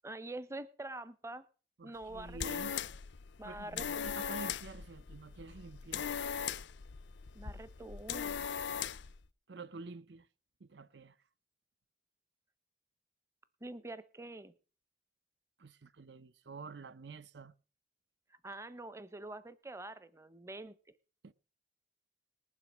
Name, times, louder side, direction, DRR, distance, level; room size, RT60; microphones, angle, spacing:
voice 1, 0.0-1.4 1.8-2.6 3.4-4.1 7.3-8.5 13.6-14.5 18.4-20.8, right 2 dB, 15° right, 0.7 m, -45 dB
voice 2, 1.8-2.7 3.4-6.1 9.5-10.3 10.6-11.1 15.6-17.5 21.2-21.3, right 3 dB, 75° right, 0.6 m, -49 dB
sound 1, 2.0-9.2, left 7 dB, 85° left, 0.6 m, -39 dB
19.5 x 7.5 x 6.1 m
head